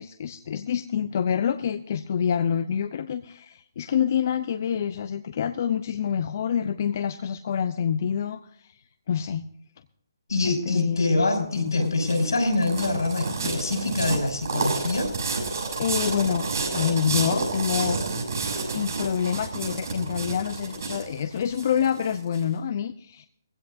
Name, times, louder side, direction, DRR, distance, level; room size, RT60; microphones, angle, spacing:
voice 1, 0.0-8.7 9.1-9.4 10.4-12.0 15.8-18.0 18.7-23.3, left 8 dB, 45° left, 10 dB, 0.6 m, -27 dB
voice 2, 10.3-15.1, left 2 dB, 80° left, 2 dB, 5.8 m, -25 dB
sound 1, 11.6-22.4, right 3 dB, 60° right, 7.0 m, -30 dB
19.5 x 16.0 x 2.6 m, 0.68 s
hypercardioid pair, 155°, 2 cm